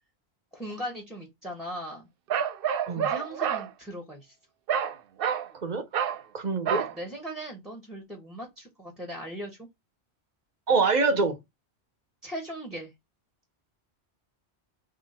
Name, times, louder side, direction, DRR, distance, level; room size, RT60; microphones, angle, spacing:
voice 1, 0.5-2.1 2.9-4.3 6.7-9.7 12.2-12.9, equal, ahead, 1.2 m, -38 dB
Bark, 2.3-3.7 4.7-4.9 5.2-5.5 5.9-6.2 6.7-6.9, right 8 dB, 65° right, 0.7 m, -28 dB
voice 2, 6.3-6.8 10.7-11.4, right 4 dB, 45° right, 1.0 m, -24 dB
3.8 x 3.0 x 4.1 m
omnidirectional pair, 1.1 m